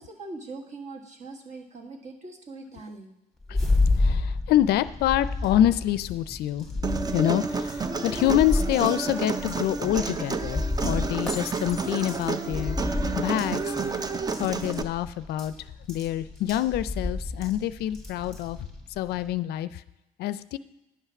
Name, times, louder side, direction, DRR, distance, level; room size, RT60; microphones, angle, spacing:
voice 1, 0.0-3.1 3.5-3.8, right 3 dB, 45° right, 2 dB, 1.7 m, -42 dB
sound 1, 3.4-19.3, left 2 dB, 5° left, 1.5 m, -31 dB
voice 2, 4.0-13.7 14.4-15.5 15.9-18.6 19.0-19.8 20.2-20.6, left 12 dB, 70° left, 15 dB, 0.4 m, -26 dB
Human voice, 6.8-14.8, right 4 dB, 25° right, 0.5 m, -30 dB
9.9 x 5.7 x 6.0 m, 0.95 s
cardioid pair, 110°, 17 cm